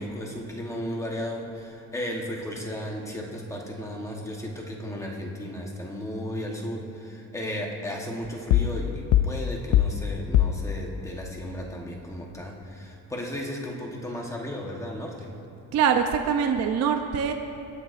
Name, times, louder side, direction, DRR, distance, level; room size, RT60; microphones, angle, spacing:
voice 1, 0.0-15.3, equal, 10° left, -1 dB, 1.1 m, -34 dB
sound 1, 8.5-8.9 9.1-10.7, left 11 dB, 80° left, 0.5 m, -21 dB
voice 2, 15.7-17.3, right 7 dB, 50° right, 5 dB, 0.6 m, -23 dB
23.5 x 9.1 x 2.5 m, 2.8 s
cardioid pair, 170°, 33 cm